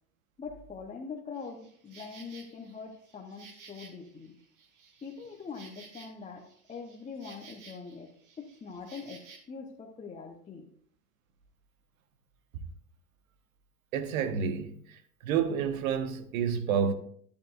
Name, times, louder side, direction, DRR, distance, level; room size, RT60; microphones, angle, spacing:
voice 1, 0.4-4.4 5.0-10.7, left 5 dB, 15° left, 1.0 m, -43 dB
Insect, 1.3-9.4, right 5 dB, 40° right, 2.1 m, -54 dB
voice 2, 13.9-16.9, right 7 dB, 65° right, 1.4 m, -29 dB
11.5 x 10.0 x 2.5 m
hypercardioid pair, 95°, 46 cm